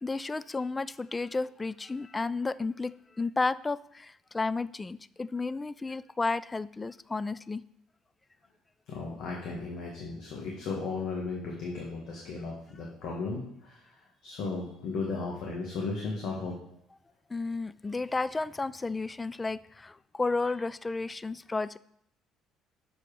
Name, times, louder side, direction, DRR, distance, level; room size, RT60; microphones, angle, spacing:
voice 1, 0.0-7.6 17.3-21.8, left 3 dB, 20° left, 18 dB, 0.3 m, -32 dB
voice 2, 8.9-16.6, left 3 dB, 70° left, -2 dB, 1.6 m, -35 dB
6.9 x 5.1 x 4.9 m, 0.69 s
supercardioid pair, 80°, 0 cm